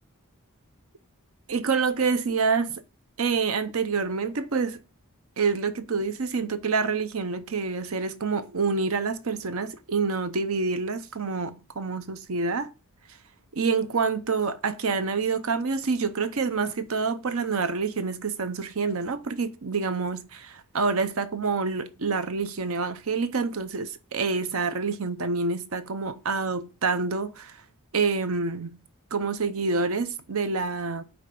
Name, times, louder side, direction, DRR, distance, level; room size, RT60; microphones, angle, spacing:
voice 1, 1.5-2.8 3.2-4.8 5.4-12.7 13.5-27.6 27.9-28.8 29.1-31.0, right 4 dB, 65° right, 0.7 m, -27 dB
8.9 x 3.3 x 5.4 m
head